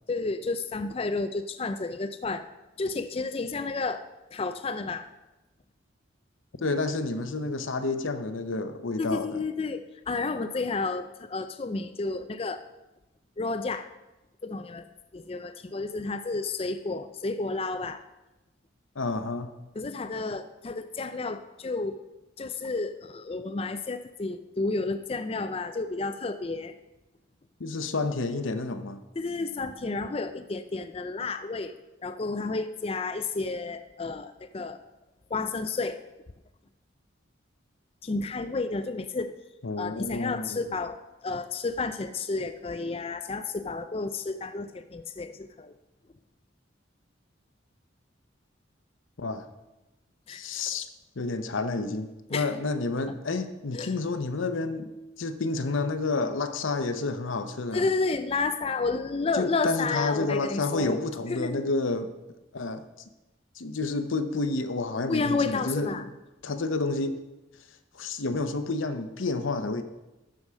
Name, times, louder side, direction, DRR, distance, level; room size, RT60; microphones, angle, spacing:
voice 1, 0.1-2.4 2.8-4.0 4.3-5.1 9.0-12.6 13.4-13.9 14.4-14.8 15.1-18.0 19.8-22.0 22.4-26.7 29.2-31.7 32.0-34.8 35.3-36.0 38.0-39.3 39.8-41.0 41.2-45.7 50.3-50.4 52.3-52.5 53.7-53.9 57.7-61.0 61.3-61.6 65.1-66.0, left 3 dB, 30° left, 9 dB, 0.4 m, -31 dB
voice 2, 6.6-9.4 19.0-19.5 27.6-29.0 39.6-40.6 49.2-49.5 50.3-50.9 51.2-54.9 55.2-57.8 59.3-62.1 62.5-62.8 63.6-66.0 66.4-67.2 67.9-69.8, left 3 dB, 85° left, 10 dB, 0.8 m, -30 dB
12.5 x 4.8 x 6.3 m, 1.0 s
head